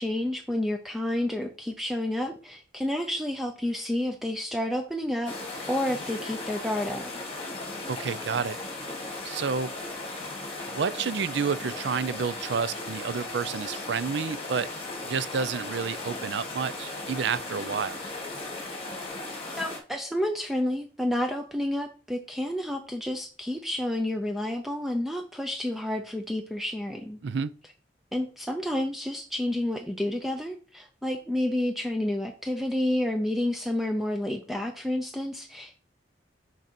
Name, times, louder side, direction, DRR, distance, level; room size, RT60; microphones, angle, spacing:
voice 1, 0.0-5.3 5.7-7.1 19.6-27.2 28.1-35.8, left 1 dB, ahead, 0.5 m, -30 dB
sound 1, 5.2-19.8, left 2 dB, 30° left, 1.6 m, -37 dB
voice 2, 7.9-8.6 9.2-9.7 10.7-14.7 15.0-18.1 27.2-27.5, right 5 dB, 75° right, 0.4 m, -30 dB
6.5 x 4.8 x 4.2 m
head